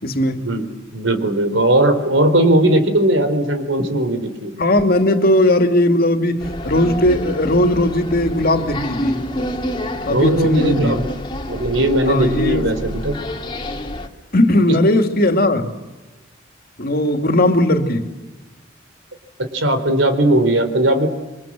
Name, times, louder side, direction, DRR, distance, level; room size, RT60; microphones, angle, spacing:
voice 1, 0.0-0.4 4.6-9.2 10.0-11.0 12.1-12.6 14.3-15.7 16.8-18.1, left 1 dB, 50° left, 6 dB, 2.5 m, -17 dB
voice 2, 0.9-4.5 10.1-11.0 11.5-13.2 19.4-21.1, right 1 dB, 85° right, 9 dB, 3.8 m, -18 dB
sound 1, 6.4-14.1, left 1 dB, 25° left, 2.2 m, -28 dB
28.0 x 24.5 x 7.6 m, 1.1 s
head